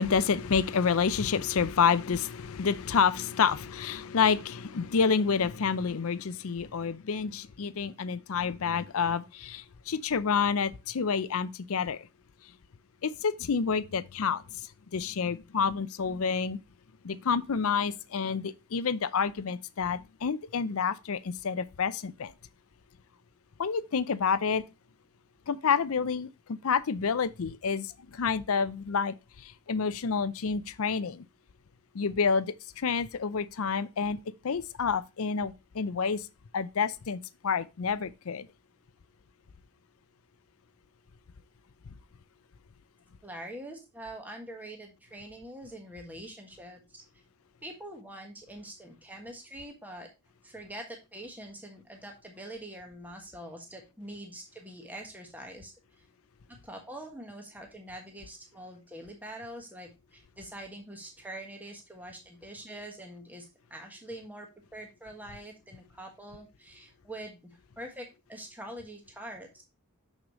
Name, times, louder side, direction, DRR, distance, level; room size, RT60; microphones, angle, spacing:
voice 1, 0.0-12.1 13.0-16.6 17.0-22.3 23.6-24.7 25.5-31.3 31.9-36.3 36.5-38.5, left 6 dB, 65° left, 0.5 m, -29 dB
voice 2, 43.2-47.0 47.6-50.1 50.4-55.7 56.0-56.1 56.5-63.4 63.7-69.6, right 1 dB, 10° right, 1.4 m, -44 dB
6.5 x 6.2 x 3.0 m
head